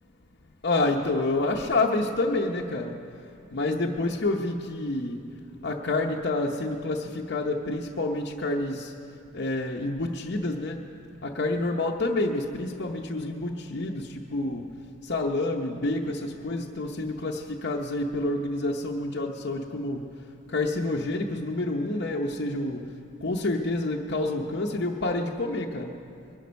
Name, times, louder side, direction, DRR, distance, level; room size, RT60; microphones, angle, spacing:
voice 1, 0.6-3.0 3.5-5.3 5.6-8.9 9.3-10.8 11.2-14.7 15.0-20.0 20.5-22.8 23.2-25.9, left 2 dB, 55° left, -1 dB, 0.8 m, -28 dB
22.5 x 11.5 x 5.3 m, 2.5 s
head